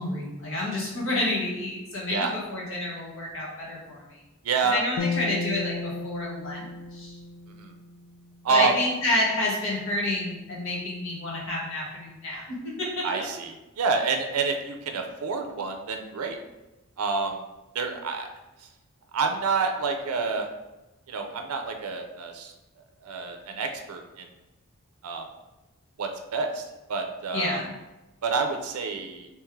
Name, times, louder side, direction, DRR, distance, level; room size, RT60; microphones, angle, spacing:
voice 1, 0.0-4.2 4.6-7.2 8.5-13.2 27.3-27.7, left 1 dB, 60° left, -4 dB, 1.1 m, -29 dB
voice 2, 4.4-4.8 7.6-7.7 8.4-8.8 13.0-16.4 17.0-17.4 17.7-18.3 19.1-20.5 21.1-22.5 23.0-24.3 25.0-25.2 26.0-27.6 28.2-29.3, right 4 dB, 85° right, 4 dB, 0.5 m, -28 dB
sound 1, 5.0-8.3, left 3 dB, 80° left, 0.4 m, -34 dB
3.5 x 3.1 x 3.1 m, 1.0 s
head